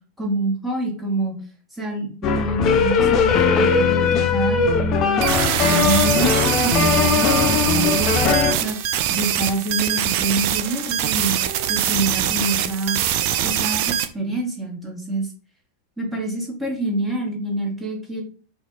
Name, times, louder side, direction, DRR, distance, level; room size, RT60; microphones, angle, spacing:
voice 1, 0.2-1.4 1.8-5.2 5.6-11.4 11.7-13.0 13.4-15.3 16.0-18.2, right 2 dB, 5° right, -1 dB, 1.5 m, -26 dB
sound 1, 2.2-8.5, left 5 dB, 35° left, 0.5 m, -19 dB
sound 2, 5.2-14.1, right 11 dB, 45° right, 0.4 m, -23 dB
4.3 x 2.6 x 3.8 m, 0.39 s
figure-of-eight pair, 90°, 0 cm